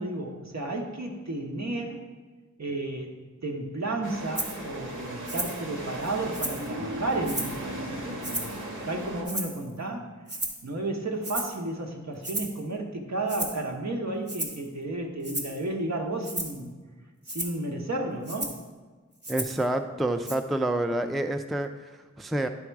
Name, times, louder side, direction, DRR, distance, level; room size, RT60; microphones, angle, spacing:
voice 1, 0.0-2.0 2.6-3.2 3.4-8.5 8.9-10.1 10.6-16.7 17.3-18.5, right 2 dB, 65° right, 1 dB, 1.2 m, -32 dB
sound 1, 4.0-9.2, right 1 dB, 85° right, 1.4 m, -36 dB
Rattle (instrument), 4.3-4.6 5.3-5.6 6.0-6.7 7.2-7.6 8.2-8.6 9.2-9.7 10.3-10.6 11.2-11.6 12.2-12.6 13.3-13.6 14.3-14.7 15.2-15.6 16.2-16.6 17.2-17.6 18.2-18.6 19.2-19.6 20.2-20.3, right 1 dB, 35° right, 1.1 m, -34 dB
voice 2, 19.3-22.5, right 1 dB, ahead, 7 dB, 0.4 m, -28 dB
10.5 x 3.6 x 4.6 m, 1.4 s
wide cardioid pair, 50°, 30 cm